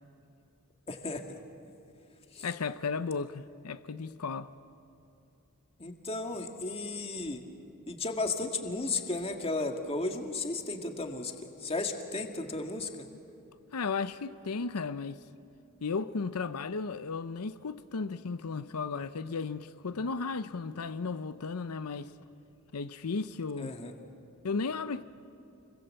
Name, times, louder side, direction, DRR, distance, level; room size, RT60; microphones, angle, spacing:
voice 1, 0.9-1.2 2.4-2.5 5.8-7.4 7.9-11.3 11.6-12.9 23.6-23.9, left 3 dB, 25° left, 1.9 m, -34 dB
voice 2, 2.4-4.5 13.7-15.2 15.8-22.1 22.7-23.7 24.4-25.0, left 4 dB, 90° left, 0.7 m, -34 dB
29.5 x 22.5 x 7.7 m
head